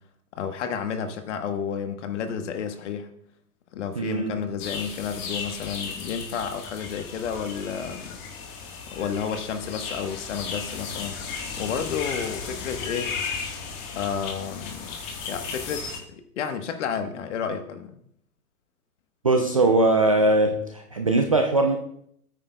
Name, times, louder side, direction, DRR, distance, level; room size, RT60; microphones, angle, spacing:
voice 1, 0.4-3.1 3.7-8.2 8.9-11.2 11.6-13.2 13.9-15.0 15.3-18.0, left 7 dB, 50° left, 8 dB, 1.3 m, -31 dB
voice 2, 4.0-4.4 19.2-21.8, right 2 dB, 25° right, 3 dB, 0.3 m, -21 dB
sound 1, 4.6-16.0, left 5 dB, 30° left, 1.5 m, -35 dB
16.5 x 8.9 x 2.3 m, 0.70 s
hypercardioid pair, 135°, 45 cm